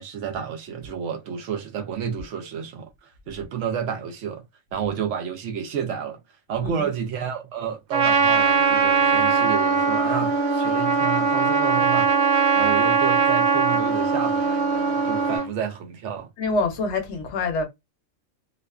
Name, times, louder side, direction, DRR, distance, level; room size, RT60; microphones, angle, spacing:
voice 1, 0.0-4.4 4.7-6.2 6.5-12.1 12.5-16.3, right 7 dB, 70° right, 0.9 m, -30 dB
Trumpet, 7.9-15.5, right 5 dB, 90° right, 1.0 m, -21 dB
sound 1, 8.3-15.4, right 2 dB, 40° right, 0.7 m, -33 dB
voice 2, 16.4-17.6, left 3 dB, 65° left, 0.9 m, -26 dB
2.4 x 2.4 x 2.2 m
omnidirectional pair, 1.4 m